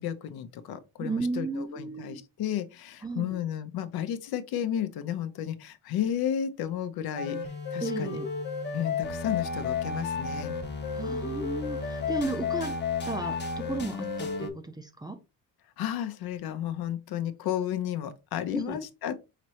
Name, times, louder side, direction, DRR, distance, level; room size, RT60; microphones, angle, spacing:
voice 1, 0.0-7.4 7.7-8.2 8.7-10.5 15.8-19.2, left 10 dB, 70° left, 0.7 m, -32 dB
voice 2, 1.0-2.2 3.0-3.4 7.8-8.3 10.9-12.8 13.1-15.2 18.5-18.8, right 3 dB, 10° right, 0.5 m, -34 dB
sound 1, 7.2-14.5, left 5 dB, 25° left, 0.8 m, -32 dB
5.0 x 3.1 x 2.8 m
cardioid pair, 115°, 39 cm